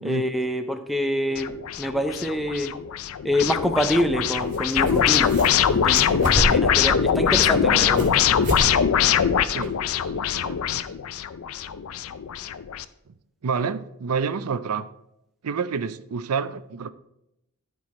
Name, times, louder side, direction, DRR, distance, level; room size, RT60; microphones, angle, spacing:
voice 1, 0.0-2.7 3.2-5.3 5.7-8.2, equal, ahead, 0.5 m, -26 dB
sound 1, 1.4-12.9, left 8 dB, 75° left, 0.4 m, -22 dB
sound 2, 2.8-2.9 4.5-4.6 4.8-5.7 5.9-6.8 7.2-8.1 8.4-8.7 9.0-9.1 9.6-9.7, right 1 dB, 35° right, 2.3 m, -28 dB
voice 2, 7.3-8.4 9.5-9.8 10.0-10.8 13.4-14.9 15.4-16.9, right 5 dB, 85° right, 0.5 m, -29 dB
14.0 x 4.8 x 4.2 m
head